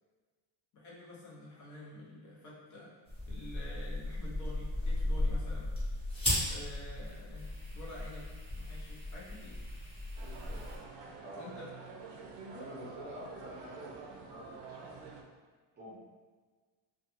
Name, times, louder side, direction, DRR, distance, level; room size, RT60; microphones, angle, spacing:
voice 1, 0.7-2.9 3.3-5.7 6.5-8.3 8.5-9.6 11.3-11.7, left 1 dB, 40° left, -6 dB, 0.6 m, -48 dB
sound 1, 3.1-10.8, left 1 dB, 10° left, 0.9 m, -36 dB
sound 2, 10.2-15.2, right 4 dB, 70° right, 0.5 m, -48 dB
voice 2, 12.5-15.1 15.8-16.0, equal, 20° right, -7 dB, 0.5 m, -48 dB
2.4 x 2.2 x 2.9 m, 1.4 s
cardioid pair, 145°, 46 cm